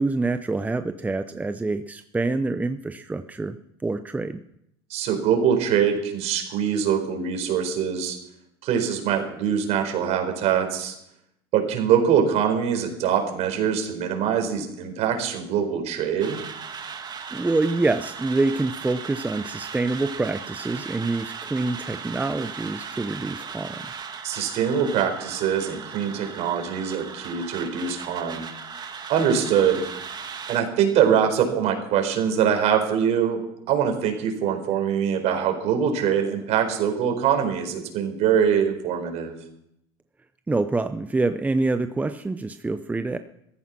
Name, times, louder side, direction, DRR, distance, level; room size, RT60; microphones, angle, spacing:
voice 1, 0.0-3.6 3.8-4.4 17.3-23.9 40.5-43.2, right 3 dB, 10° right, 10 dB, 0.7 m, -26 dB
voice 2, 4.9-8.2 8.6-11.0 11.5-16.4 24.2-28.5 29.1-29.8 30.5-33.4 33.7-39.3, right 8 dB, 60° right, 5 dB, 4.4 m, -23 dB
sound 1, 16.2-30.6, right 6 dB, 35° right, 2.2 m, -37 dB
15.5 x 14.0 x 6.1 m, 0.77 s
supercardioid pair, 90°, 13 cm